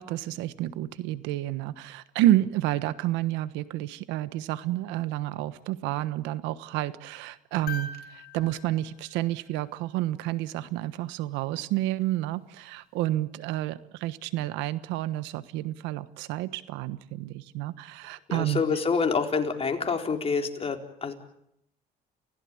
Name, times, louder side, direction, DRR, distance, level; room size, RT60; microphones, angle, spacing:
voice 1, 0.0-18.6, right 15 dB, 85° right, 14 dB, 1.3 m, -30 dB
sound 1, 7.7-10.0 12.0-12.1, left 4 dB, 55° left, 2.8 m, -42 dB
voice 2, 18.3-21.1, left 5 dB, 35° left, 3 dB, 4.3 m, -27 dB
29.5 x 16.0 x 8.7 m, 0.78 s
supercardioid pair, 85°, 18 cm